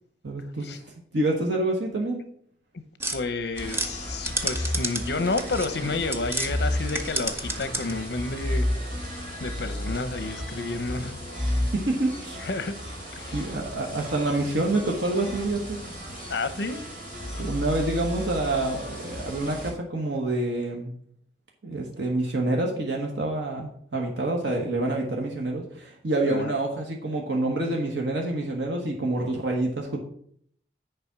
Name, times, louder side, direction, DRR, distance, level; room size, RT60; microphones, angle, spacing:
voice 1, 0.2-0.8 1.1-2.2 11.4-12.5 13.3-16.2 17.4-20.9 21.6-30.0, right 2 dB, 85° right, 0 dB, 1.1 m, -27 dB
sound 1, 3.0-6.5 6.8-8.1, right 2 dB, 15° right, 0.6 m, -31 dB
voice 2, 3.1-8.7 9.4-11.2 12.4-12.7 13.1-13.5 16.3-16.8 26.2-26.5, left 3 dB, 65° left, 11 dB, 0.7 m, -30 dB
sound 2, 3.5-19.7, left 1 dB, 45° right, 3.6 m, -33 dB
6.9 x 5.0 x 5.9 m, 0.65 s
head